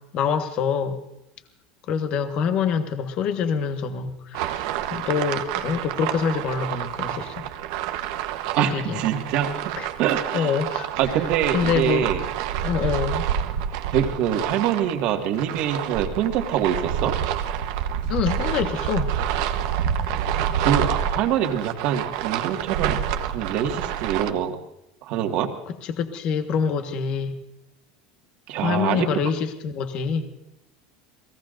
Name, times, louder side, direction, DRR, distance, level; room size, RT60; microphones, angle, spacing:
voice 1, 0.1-1.0 1.9-7.5 8.7-9.0 9.8-9.9 10.3-10.9 11.5-12.1 12.6-13.2 18.1-19.1 25.8-27.4 28.6-30.3, left 6 dB, 45° left, 7 dB, 1.4 m, -25 dB
sound 1, 4.3-24.3, right 9 dB, 70° right, 1.1 m, -28 dB
voice 2, 8.5-10.5 11.0-12.2 13.9-17.2 20.6-23.0 23.3-24.6 25.0-25.5 28.5-29.1, right 9 dB, 55° right, 4 dB, 1.9 m, -24 dB
29.5 x 18.5 x 2.6 m, 0.85 s
supercardioid pair, 145°, 2 cm